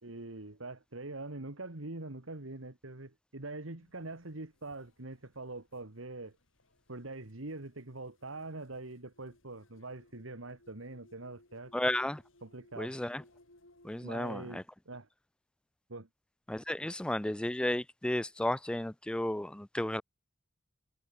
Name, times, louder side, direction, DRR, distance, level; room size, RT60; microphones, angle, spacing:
voice 1, 0.0-6.3 6.9-11.7 12.4-12.9 14.0-15.1 15.9-16.1, right 2 dB, 85° right, 2.1 m, -44 dB
sound 1, 3.8-14.5, left 1 dB, 80° left, 6.7 m, -64 dB
voice 2, 11.7-12.2 12.8-13.2 13.8-14.6 16.5-20.0, left 1 dB, 5° left, 0.3 m, -33 dB
head